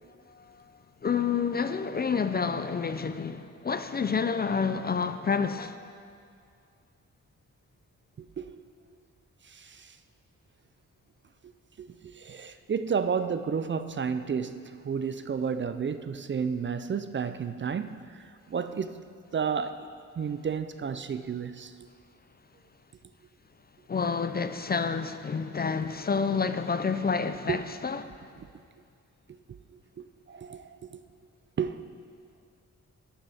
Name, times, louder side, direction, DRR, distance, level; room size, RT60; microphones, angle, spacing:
voice 1, 1.0-5.9 23.9-28.0, left 5 dB, 30° left, 0.4 m, -29 dB
voice 2, 8.2-8.6 9.5-9.9 11.8-11.9 12.1-18.0 18.5-19.0 19.3-19.9 20.2-21.7 27.5-27.6 30.0-31.0 31.6-31.8, right 6 dB, 40° right, 0.4 m, -31 dB
13.5 x 9.9 x 3.4 m
wide cardioid pair, 115°, 31 cm